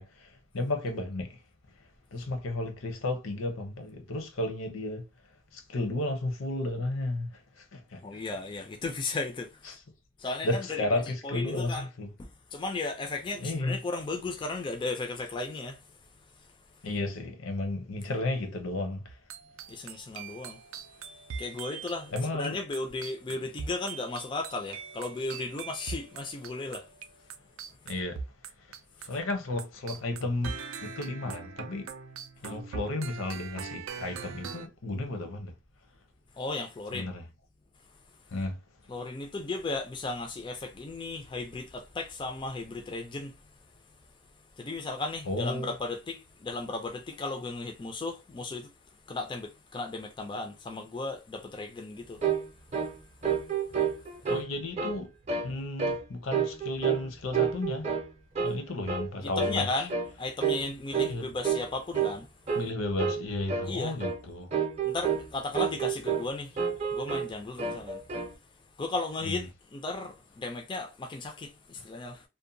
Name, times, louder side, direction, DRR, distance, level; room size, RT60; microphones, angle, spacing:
voice 1, 0.0-1.4 2.1-5.1 5.5-8.2 9.7-9.8 10.4-12.1 13.4-13.8 16.8-19.1 22.1-22.6 27.8-28.2 28.6-28.7 29.0-31.9 32.4-35.5 36.9-37.2 38.3-38.6 45.3-45.7 54.3-55.1 55.4-57.9 58.4-59.9 61.0-61.3 62.5-64.5 69.3-69.5, left 2 dB, 80° left, 0.7 m, -33 dB
voice 2, 8.0-9.5 10.2-10.9 11.2-11.9 12.2-15.8 19.7-20.6 21.4-26.9 36.4-37.1 38.9-43.3 44.6-48.7 49.1-52.2 59.2-59.9 60.2-62.3 63.7-64.0 64.9-66.5 66.9-68.0 68.8-72.2, left 3 dB, 25° left, 0.3 m, -35 dB
sound 1, 19.1-29.3 29.6-34.7, right 6 dB, 85° right, 0.4 m, -42 dB
sound 2, 52.2-52.5 52.7-53.0 53.2-54.5 54.8-55.0 55.3-55.5 55.8-56.0 56.3-57.1 57.3-58.1 58.3-58.6 58.9-59.1 59.4-59.6 59.9-60.1 60.4-60.7 60.9-61.1 61.4-61.7 61.9-62.2 62.5-62.7 63.0-63.2 63.5-63.7 64.0-64.2 64.5-65.3 65.5-66.3 66.6-67.3 67.6-68.3, right 6 dB, 35° right, 0.5 m, -29 dB
2.6 x 2.1 x 2.6 m
head